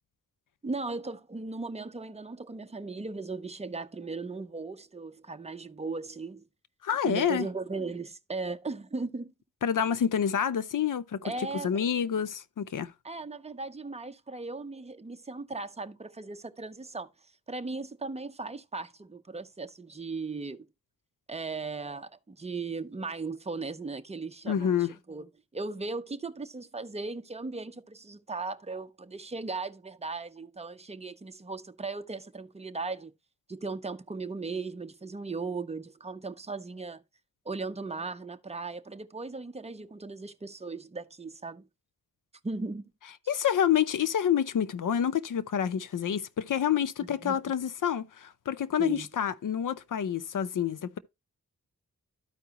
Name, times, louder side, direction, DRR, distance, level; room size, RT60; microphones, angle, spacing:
voice 1, 0.6-6.4 7.0-9.3 11.2-11.8 13.0-17.1 17.5-20.7 21.3-24.8 25.1-33.1 33.5-37.0 37.5-41.7 42.4-42.9 47.1-47.4 48.8-49.1, right 3 dB, 20° right, 0.7 m, -37 dB
voice 2, 6.8-7.5 9.6-12.9 24.5-25.0 43.3-51.0, left 8 dB, 65° left, 0.7 m, -28 dB
13.0 x 4.7 x 2.9 m
cardioid pair, 70°, 35 cm